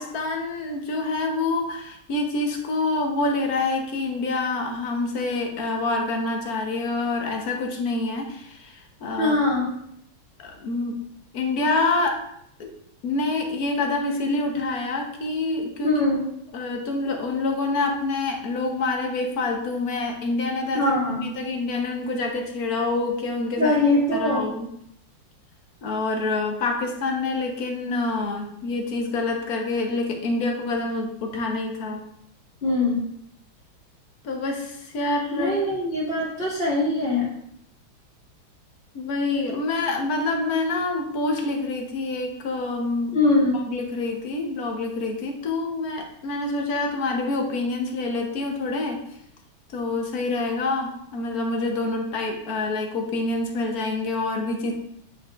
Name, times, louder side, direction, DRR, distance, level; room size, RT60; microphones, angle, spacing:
voice 1, 0.0-9.4 10.4-11.0 11.3-12.2 12.6-12.7 13.0-15.9 16.5-23.7 24.1-24.7 25.8-32.0 34.2-35.5 38.9-43.2 43.5-49.0 49.7-54.7, left 3 dB, 55° left, 3 dB, 1.2 m, -27 dB
voice 2, 9.2-9.7 15.8-16.2 20.7-21.2 23.6-24.5 32.6-33.0 35.3-37.3 43.1-43.6, left 2 dB, 30° left, -5 dB, 2.1 m, -22 dB
8.6 x 5.3 x 2.4 m, 0.73 s
omnidirectional pair, 2.3 m